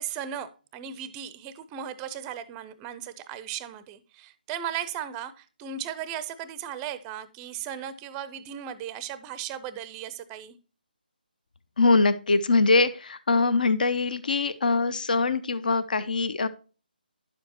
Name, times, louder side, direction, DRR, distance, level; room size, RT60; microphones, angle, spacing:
voice 1, 0.0-10.6, right 9 dB, 15° right, 0.5 m, -36 dB
voice 2, 11.8-16.5, left 3 dB, 60° left, 0.7 m, -23 dB
10.5 x 7.0 x 2.9 m
figure-of-eight pair, 150°, 5 cm